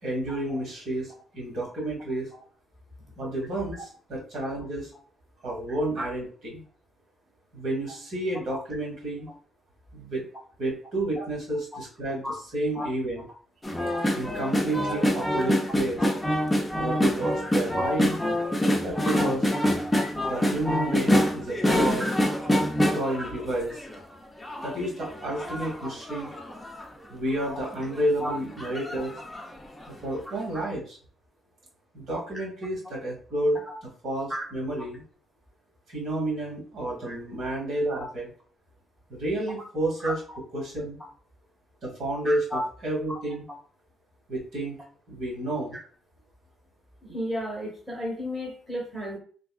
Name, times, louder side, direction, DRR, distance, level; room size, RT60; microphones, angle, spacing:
voice 1, 0.0-2.3 3.1-4.9 5.4-6.6 7.5-9.3 9.9-10.2 10.6-12.2 12.5-13.2 14.1-16.1 16.7-18.2 18.8-19.4 20.3-22.0 22.8-23.8 24.6-26.3 27.1-29.1 30.0-31.0 31.9-33.6 34.0-35.0 35.9-38.3 39.1-40.2 40.5-41.0 41.8-43.4 44.3-44.8 45.1-45.8, right 1 dB, 75° right, -3 dB, 1.4 m, -30 dB
sound 1, 13.6-24.0 24.4-26.8 27.4-27.5 27.8-28.0 28.6-29.5 29.9-30.0, equal, 10° left, 0.6 m, -26 dB
voice 2, 17.4-17.8 18.1-18.2 19.1-19.2 20.8-20.9 21.1-21.2 22.0-22.1 27.5-27.6 28.2-28.3 32.8-32.9 33.7-33.8 34.3-34.5 37.1-37.2 37.9-38.0 40.0-40.1 42.2-42.6 43.1-43.2 47.0-49.2, equal, 15° right, -1 dB, 1.2 m, -33 dB
3.4 x 2.3 x 2.4 m, 0.43 s
cardioid pair, 90°, 0 cm